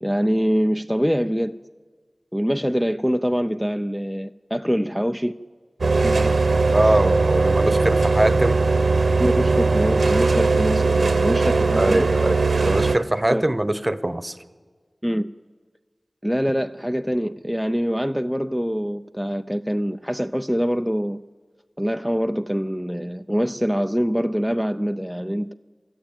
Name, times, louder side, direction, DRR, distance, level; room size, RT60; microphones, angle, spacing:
voice 1, 0.0-1.6 2.3-5.3 6.0-6.4 6.8-7.0 9.2-12.1 13.3-13.4 15.0-15.3 16.2-21.2 21.8-25.5, equal, ahead, 0.5 m, -24 dB
sound 1, 5.8-13.0, right 3 dB, 90° right, 0.9 m, -19 dB
voice 2, 6.7-8.6 11.8-14.4, right 1 dB, 25° right, 1.1 m, -22 dB
24.5 x 13.5 x 9.0 m
wide cardioid pair, 40°, 0 cm